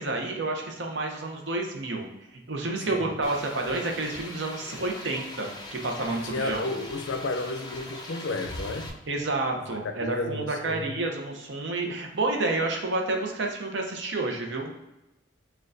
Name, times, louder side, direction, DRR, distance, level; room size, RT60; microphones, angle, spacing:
voice 1, 0.0-2.1 2.3-6.7 9.1-14.7, right 2 dB, 70° right, 2 dB, 0.7 m, -30 dB
sound 1, 3.2-8.9, left 2 dB, 20° left, 0.5 m, -41 dB
voice 2, 6.1-8.9 9.7-11.0, left 2 dB, 80° left, 6 dB, 0.5 m, -32 dB
6.3 x 2.2 x 2.6 m, 0.96 s
head